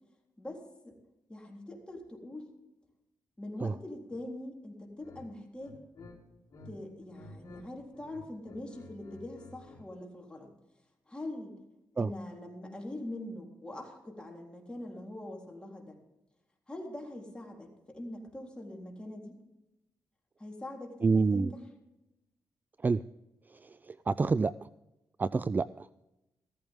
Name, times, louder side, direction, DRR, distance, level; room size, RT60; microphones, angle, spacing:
voice 1, 0.4-1.0 1.3-2.5 3.4-5.8 6.7-10.5 11.1-11.5 11.9-16.0 16.7-19.4 20.4-21.6, left 1 dB, 15° left, 0 dB, 3.7 m, -43 dB
sound 1, 5.0-5.2 5.6-6.7 7.0-7.6 7.9-9.8, left 3 dB, 55° left, 3.9 m, -51 dB
voice 2, 21.0-21.5 22.8-23.0 23.9-24.5 25.2-26.0, right 4 dB, 25° right, 16 dB, 0.3 m, -27 dB
15.5 x 14.0 x 3.7 m, 0.92 s
cardioid pair, 90°, 7 cm